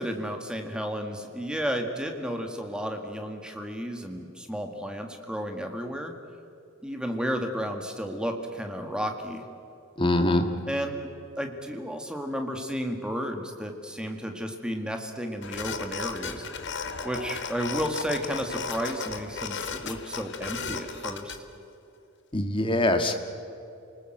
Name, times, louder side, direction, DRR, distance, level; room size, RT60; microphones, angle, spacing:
voice 1, 0.0-6.1 6.8-9.5 10.7-11.1 11.4-16.5 17.0-21.4, equal, 5° right, 4 dB, 1.8 m, -32 dB
voice 2, 10.0-10.5 22.3-23.1, left 1 dB, 25° left, 6 dB, 1.7 m, -23 dB
sound 1, 15.4-21.4, left 5 dB, 55° left, 1.6 m, -35 dB
29.0 x 20.0 x 7.9 m, 2.7 s
head